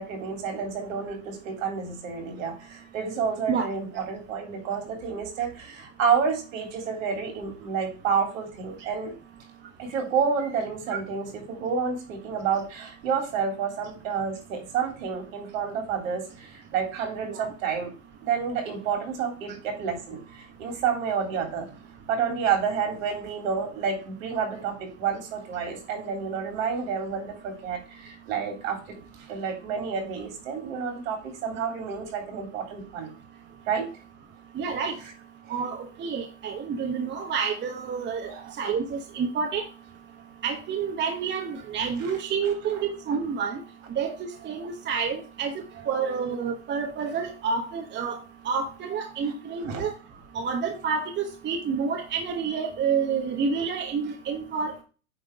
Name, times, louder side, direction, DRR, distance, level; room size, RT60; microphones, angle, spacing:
voice 1, 0.0-9.1 9.8-17.9 18.2-21.7 22.1-29.0 29.3-33.1 33.7-33.9 38.3-38.5 49.2-49.3 49.6-49.8, right 6 dB, 70° right, 3 dB, 3.4 m, -29 dB
voice 2, 34.5-35.0 35.5-39.7 40.4-43.6 43.9-44.2 44.4-45.5 45.8-48.2 48.4-49.9 50.3-54.8, right 6 dB, 25° right, 4 dB, 1.1 m, -29 dB
9.2 x 3.6 x 4.7 m, 0.35 s
hypercardioid pair, 105°, 41 cm